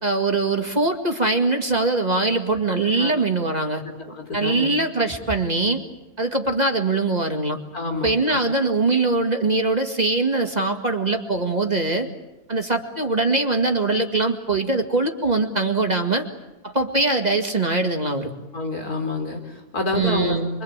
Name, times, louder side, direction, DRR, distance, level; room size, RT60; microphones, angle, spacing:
voice 1, 0.0-3.8 4.3-5.8 6.2-7.6 8.0-12.1 12.5-16.3 16.6-18.3 19.9-20.5, right 3 dB, 30° right, 4 dB, 2.1 m, -22 dB
voice 2, 2.9-3.3 3.7-4.7 7.7-8.4 18.5-20.6, left 3 dB, 85° left, 4 dB, 4.5 m, -28 dB
27.5 x 24.0 x 8.9 m, 0.98 s
omnidirectional pair, 1.5 m